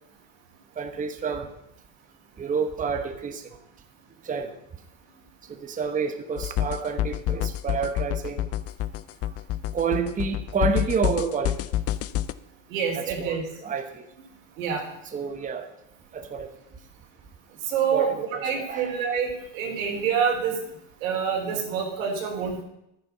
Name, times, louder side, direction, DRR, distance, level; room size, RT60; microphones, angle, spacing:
voice 1, 0.8-1.5 2.4-3.5 4.2-4.5 5.5-8.5 9.7-11.6 12.9-14.0 15.0-15.7 16.1-16.5 17.9-19.0, right 5 dB, 20° right, 7 dB, 1.0 m, -29 dB
sound 1, 6.4-12.3, left 12 dB, 40° left, 0.6 m, -28 dB
voice 2, 12.7-13.4 14.6-14.8 17.7-18.1 18.4-20.6 21.0-22.6, right 7 dB, 90° right, 1 dB, 3.6 m, -26 dB
11.0 x 9.7 x 5.6 m, 0.82 s
supercardioid pair, 120°, 39 cm